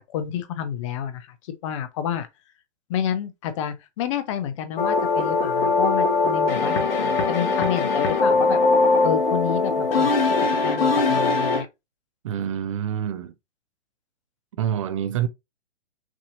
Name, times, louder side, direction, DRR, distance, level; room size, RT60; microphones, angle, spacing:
voice 1, 0.1-1.3 1.6-2.3 2.9-8.6 9.0-10.1 10.6-11.7, left 9 dB, 25° left, 0.7 m, -29 dB
sound 1, 4.8-11.6, left 3 dB, 55° left, 1.7 m, -21 dB
voice 2, 12.2-13.3 14.6-15.3, right 10 dB, 30° right, 0.5 m, -26 dB
6.1 x 2.7 x 2.8 m
hypercardioid pair, 140°, 34 cm